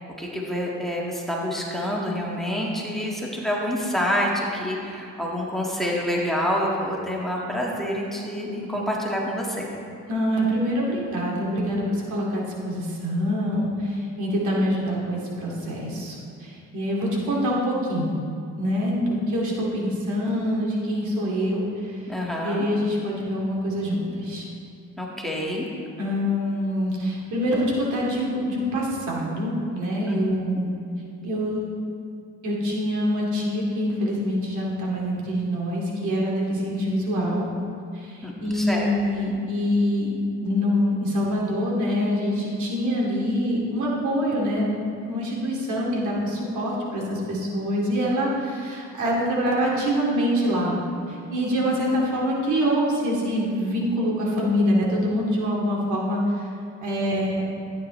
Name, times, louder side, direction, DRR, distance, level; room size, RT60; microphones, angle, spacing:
voice 1, 0.0-9.7 17.2-17.5 22.1-22.7 25.0-25.7 30.1-30.2 38.2-38.9, equal, ahead, -3 dB, 1.9 m, -27 dB
voice 2, 10.1-18.1 18.6-22.1 22.4-24.5 26.0-30.7 31.2-31.7 32.4-37.5 37.9-40.1 40.4-50.7 51.1-56.5 56.8-57.4, equal, 75° right, -4 dB, 2.6 m, -25 dB
13.5 x 9.2 x 3.3 m, 2.6 s
cardioid pair, 90°, 30 cm